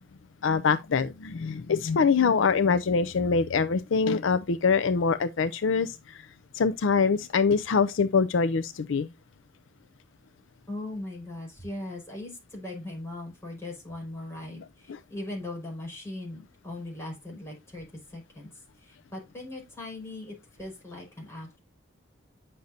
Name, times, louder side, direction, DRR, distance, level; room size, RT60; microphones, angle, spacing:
voice 1, 0.4-6.2 6.5-9.1 14.9-15.0, left 5 dB, 70° left, 0.5 m, -24 dB
voice 2, 10.7-18.5 18.8-21.6, left 1 dB, 15° left, 5.1 m, -39 dB
9.3 x 6.6 x 2.7 m
head